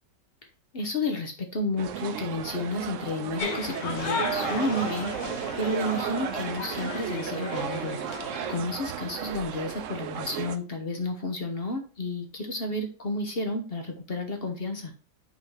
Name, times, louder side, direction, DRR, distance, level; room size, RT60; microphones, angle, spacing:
voice 1, 0.7-5.1 5.6-8.0 8.5-14.9, left 2 dB, 45° left, 5 dB, 0.9 m, -31 dB
sound 1, 1.8-10.6, right 9 dB, 75° right, 0.7 m, -34 dB
sound 2, 3.4-8.6, left 4 dB, 85° left, 1.8 m, -35 dB
5.5 x 4.0 x 5.4 m, 0.38 s
omnidirectional pair, 1.9 m